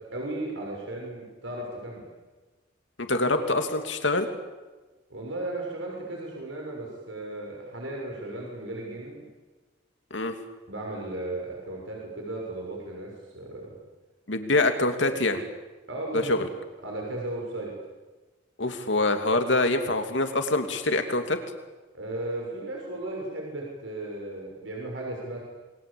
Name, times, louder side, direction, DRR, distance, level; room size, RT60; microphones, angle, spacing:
voice 1, 0.0-2.1 5.1-9.2 10.7-13.7 15.9-16.4 16.8-17.7 21.9-25.4, right 2 dB, 85° right, -1 dB, 6.6 m, -35 dB
voice 2, 3.0-4.3 10.1-10.3 14.3-15.4 16.1-16.5 18.6-21.4, left 2 dB, 70° left, 6 dB, 2.9 m, -25 dB
28.0 x 22.0 x 8.7 m, 1.2 s
head